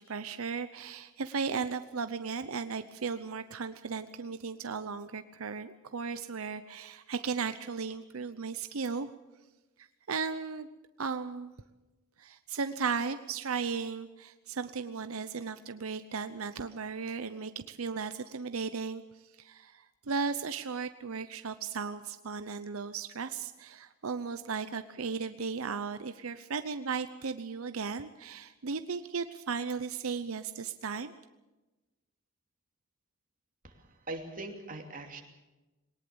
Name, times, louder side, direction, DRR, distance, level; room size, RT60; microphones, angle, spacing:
voice 1, 0.0-9.1 9.8-10.7 11.0-11.5 12.2-19.0 19.4-31.1, right 5 dB, 85° right, 10 dB, 0.8 m, -36 dB
voice 2, 33.6-35.2, right 2 dB, 40° right, 3 dB, 2.8 m, -41 dB
21.5 x 19.0 x 7.0 m, 1.1 s
head